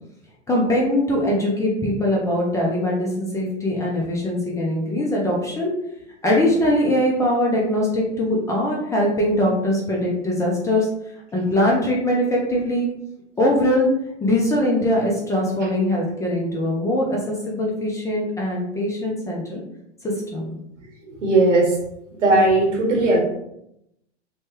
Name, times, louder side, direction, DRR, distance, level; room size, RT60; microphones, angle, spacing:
voice 1, 0.5-5.7 6.2-10.9 11.3-12.9 13.4-13.9 14.2-19.6 20.0-20.5, left 1 dB, 10° left, -3 dB, 0.3 m, -22 dB
voice 2, 21.0-21.8 22.2-23.2, right 2 dB, 90° right, -1 dB, 1.2 m, -18 dB
3.1 x 2.2 x 2.9 m, 0.79 s
hypercardioid pair, 110°, 35 cm